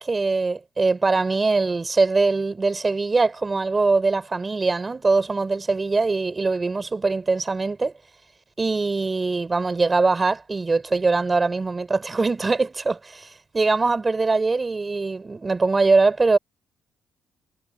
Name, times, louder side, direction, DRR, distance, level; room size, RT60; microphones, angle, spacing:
voice 1, 0.0-7.9 8.6-16.4, right 3 dB, 25° right, 3.4 m, -22 dB
cardioid pair, 90°, 0 cm